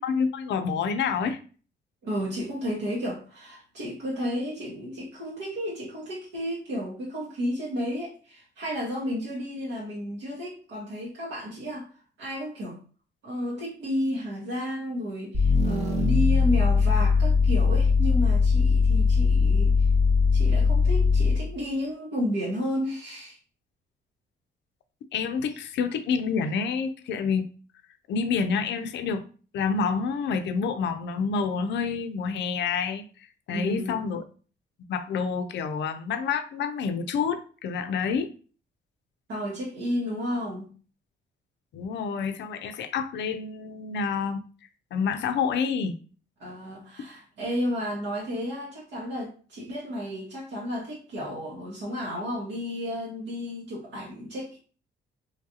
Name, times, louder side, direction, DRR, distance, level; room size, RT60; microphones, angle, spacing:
voice 1, 0.0-1.4 25.1-27.5 28.1-29.2 29.5-33.0 33.5-34.2 34.9-38.3 41.7-44.4 44.9-46.0, left 5 dB, 65° left, 8 dB, 0.4 m, -28 dB
voice 2, 2.0-11.9 12.2-12.8 13.2-19.9 20.3-23.4 25.5-25.6 33.5-34.0 39.3-40.7 46.4-54.6, equal, 70° right, -4 dB, 1.0 m, -32 dB
sound 1, 15.3-21.5, left 4 dB, 35° right, 0.7 m, -21 dB
3.1 x 2.4 x 2.7 m, 0.39 s
cardioid pair, 90°, 20 cm